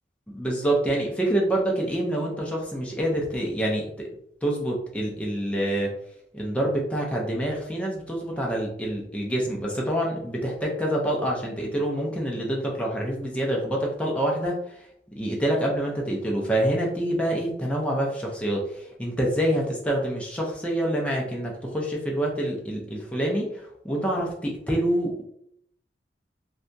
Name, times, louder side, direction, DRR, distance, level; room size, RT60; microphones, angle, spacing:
voice 1, 0.3-4.1 4.4-5.9 6.3-14.6 15.1-25.2, right 1 dB, 5° left, -2 dB, 0.5 m, -26 dB
2.7 x 2.2 x 2.6 m, 0.70 s
head